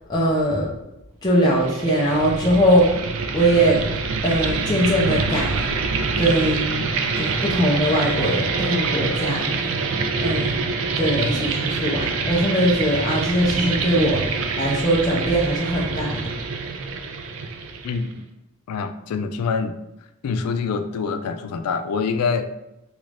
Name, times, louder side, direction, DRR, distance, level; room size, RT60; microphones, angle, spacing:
voice 1, 0.1-0.7 1.2-2.9 3.3-3.8 4.2-5.6 6.0-6.9 7.2-9.5 10.2-10.7 11.0-14.2 14.6-16.3, right 1 dB, 20° left, -5 dB, 0.5 m, -21 dB
sound 1, 1.4-18.1, right 4 dB, 65° right, 0.4 m, -26 dB
voice 2, 17.8-18.2 18.7-19.8 20.2-22.5, left 5 dB, 85° left, 9 dB, 0.3 m, -25 dB
3.0 x 2.5 x 3.3 m, 0.90 s
head